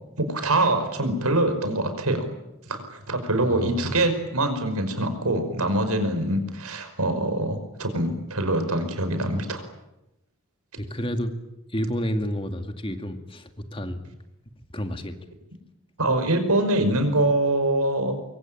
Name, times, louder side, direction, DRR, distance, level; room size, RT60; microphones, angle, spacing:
voice 1, 0.2-2.2 2.7-9.6 16.0-18.1, right 1 dB, 85° right, 7 dB, 5.3 m, -24 dB
voice 2, 3.3-4.0 10.8-11.3 11.7-14.0 14.7-15.1, equal, 25° left, 7 dB, 2.0 m, -30 dB
25.0 x 23.5 x 9.1 m, 0.92 s
head